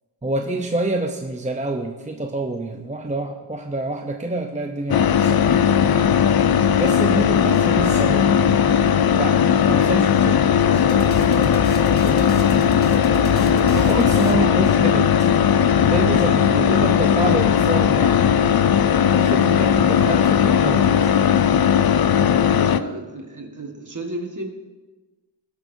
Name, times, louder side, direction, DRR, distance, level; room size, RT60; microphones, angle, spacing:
voice 1, 0.2-6.1 6.8-8.8 9.1-9.4 9.7-12.5 13.7-15.1 15.8-18.2 19.1-21.1, right 2 dB, 15° right, 3 dB, 0.6 m, -27 dB
sound 1, 4.9-22.8, left 8 dB, 55° left, 0.5 m, -17 dB
sound 2, 10.9-15.2, left 3 dB, 20° left, 1.0 m, -30 dB
voice 2, 13.5-14.1 16.0-16.3 21.8-24.5, right 2 dB, 40° right, 3 dB, 1.6 m, -33 dB
17.0 x 8.0 x 2.7 m, 1.2 s
wide cardioid pair, 75°, 45 cm